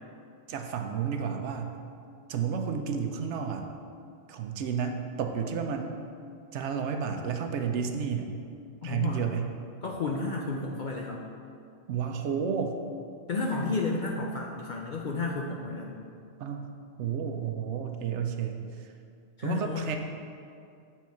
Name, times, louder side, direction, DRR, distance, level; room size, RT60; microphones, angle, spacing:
voice 1, 0.5-1.7 2.3-3.7 4.3-5.9 6.5-8.3 8.8-9.5 11.9-12.7 16.4-16.7 17.0-18.9 19.4-20.0, right 7 dB, 70° right, 5 dB, 0.9 m, -31 dB
voice 2, 8.8-9.2 9.8-11.3 13.3-16.0 19.4-19.9, left 3 dB, 55° left, -1 dB, 0.5 m, -32 dB
7.1 x 4.5 x 4.6 m, 2.4 s
omnidirectional pair, 1.2 m